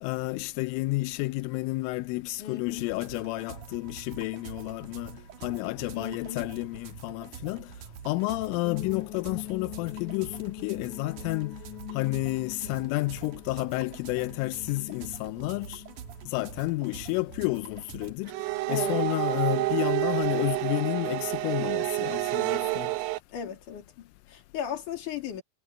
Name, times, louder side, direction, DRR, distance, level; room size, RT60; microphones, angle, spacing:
voice 1, 0.0-7.7 8.1-11.6 11.9-15.8 16.3-18.3 18.7-22.9, left 21 dB, 85° left, 3.2 m, -31 dB
voice 2, 2.4-2.9 5.9-6.4 12.6-13.0 18.7-19.0 23.3-25.4, left 9 dB, 45° left, 3.9 m, -37 dB
sound 1, 2.8-18.1, right 8 dB, 65° right, 2.0 m, -46 dB
sound 2, 8.6-21.7, left 17 dB, 70° left, 3.6 m, -44 dB
sound 3, 18.3-23.2, right 20 dB, 85° right, 2.4 m, -28 dB
omnidirectional pair, 5.6 m